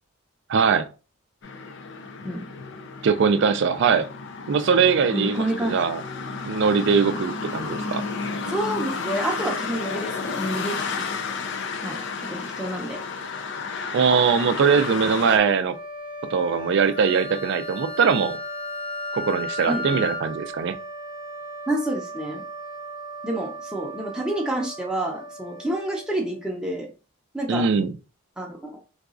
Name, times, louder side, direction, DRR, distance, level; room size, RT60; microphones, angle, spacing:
voice 1, 0.5-0.9 3.0-4.1 4.5-6.0 6.5-8.0 13.9-15.8 16.3-18.4 19.1-20.8 27.5-27.9, right 6 dB, 55° right, 0.3 m, -21 dB
sound 1, 1.4-15.4, left 4 dB, 55° left, 0.4 m, -32 dB
voice 2, 5.0-5.8 8.5-11.0 11.8-13.0 19.7-20.0 21.7-22.4 23.2-26.9 27.3-27.7 28.4-28.8, right 1 dB, 5° right, 0.6 m, -29 dB
sound 2, 15.7-26.6, right 2 dB, 40° left, 0.8 m, -38 dB
Wind instrument woodwind instrument, 16.9-20.3, left 3 dB, 80° left, 1.1 m, -33 dB
3.9 x 2.3 x 2.4 m
head